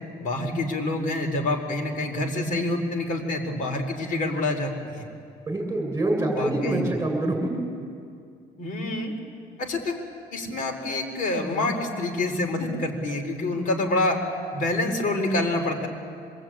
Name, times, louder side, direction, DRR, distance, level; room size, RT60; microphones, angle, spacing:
voice 1, 0.2-5.1 6.3-6.9 8.6-9.2 9.6-10.0 10.3-14.2 14.5-15.9, left 2 dB, 55° left, 3 dB, 4.6 m, -27 dB
voice 2, 5.5-7.6, right 2 dB, 15° right, 3 dB, 7.4 m, -25 dB
25.5 x 22.5 x 9.0 m, 2.3 s
cardioid pair, 110°, 17 cm